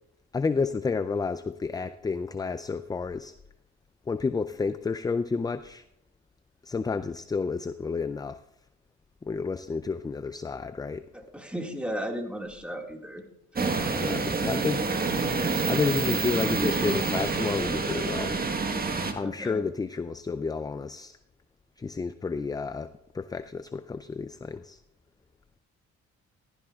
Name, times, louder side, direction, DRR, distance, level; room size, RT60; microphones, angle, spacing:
voice 1, 0.3-3.3 4.1-5.8 6.6-8.4 9.2-11.1 14.0-14.9 15.7-18.4 19.1-21.2 21.8-24.8, left 4 dB, 15° left, 12 dB, 0.3 m, -30 dB
voice 2, 11.1-13.2 19.2-19.6, equal, 5° right, 2 dB, 1.9 m, -35 dB
sound 1, 13.6-19.1, right 4 dB, 30° right, 1.3 m, -27 dB
15.0 x 13.0 x 2.3 m, 0.79 s
cardioid pair, 90°, 30 cm